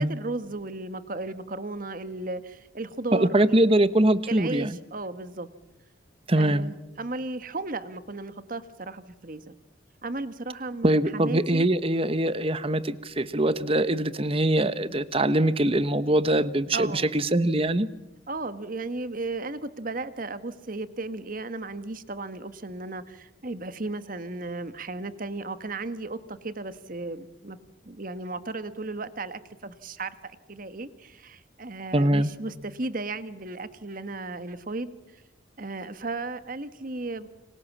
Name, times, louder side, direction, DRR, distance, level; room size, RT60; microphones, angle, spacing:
voice 1, 0.0-3.6 4.3-5.5 6.4-9.5 10.0-10.9 11.1-11.7 16.7-17.1 18.3-27.6 27.8-35.2 35.6-37.3, right 2 dB, 45° right, 12 dB, 1.4 m, -35 dB
voice 2, 3.1-4.8 6.3-6.7 10.8-17.9 31.9-32.3, right 1 dB, 30° right, 14 dB, 1.1 m, -23 dB
29.5 x 25.5 x 7.3 m, 0.96 s
head